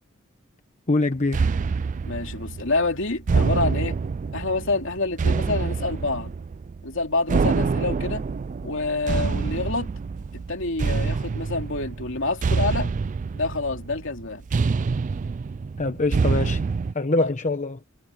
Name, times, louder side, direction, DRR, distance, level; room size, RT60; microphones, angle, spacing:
voice 1, 0.9-1.4 15.8-16.6 16.9-17.8, left 2 dB, 35° left, 1.0 m, -24 dB
sound 1, 1.3-16.9, right 4 dB, 40° right, 0.3 m, -26 dB
voice 2, 2.0-4.0 4.3-6.3 6.8-8.3 8.6-9.9 10.3-12.9 13.3-14.4 17.2-17.3, left 3 dB, 65° left, 2.9 m, -27 dB
head